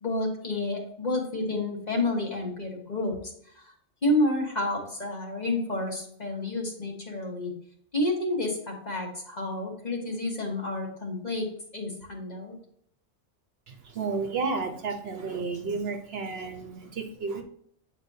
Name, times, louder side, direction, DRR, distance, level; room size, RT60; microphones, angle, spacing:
voice 1, 0.0-3.7 4.0-7.5 7.9-11.5 11.7-12.6, left 2 dB, 35° left, 0 dB, 1.3 m, -30 dB
voice 2, 13.7-17.4, right 4 dB, 60° right, 5 dB, 1.0 m, -32 dB
8.4 x 4.6 x 2.7 m, 0.68 s
omnidirectional pair, 1.2 m